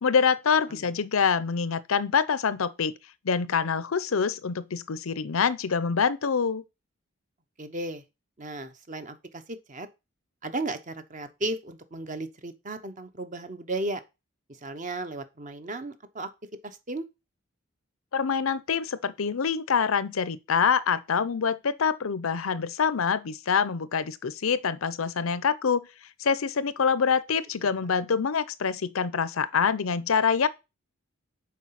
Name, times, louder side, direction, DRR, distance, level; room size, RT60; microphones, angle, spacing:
voice 1, 0.0-2.9 3.2-6.6 18.1-25.8 26.2-30.5, left 6 dB, 85° left, 0.6 m, -25 dB
voice 2, 7.6-8.0 8.4-9.9 10.4-14.0 14.6-16.3 16.6-17.1, right 2 dB, 40° right, 1.0 m, -35 dB
7.2 x 4.7 x 5.8 m
head